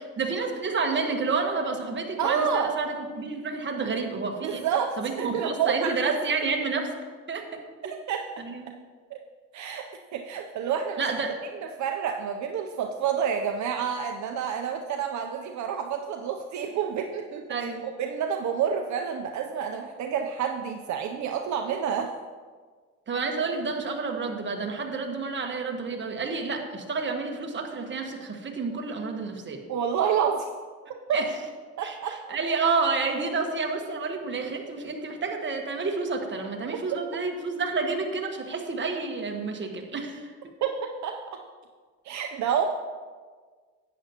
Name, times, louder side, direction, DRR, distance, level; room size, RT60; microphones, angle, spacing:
voice 1, 0.2-4.6 5.0-6.9 7.3-7.9 8.4-8.6 11.0-11.3 17.5-17.8 23.1-29.6 31.1-31.3 31.8-31.9 32.3-40.3, right 4 dB, 40° right, 2 dB, 1.4 m, -29 dB
voice 2, 2.2-2.7 4.4-6.2 8.1-8.2 9.1-9.2 9.5-9.8 10.1-11.0 11.8-22.1 29.7-30.5 31.1-31.2 31.8-32.4 40.6-40.7 41.0-41.2 42.0-42.6, right 7 dB, 70° right, 4 dB, 0.7 m, -28 dB
11.0 x 9.0 x 2.9 m, 1.5 s
cardioid pair, 90°, 30 cm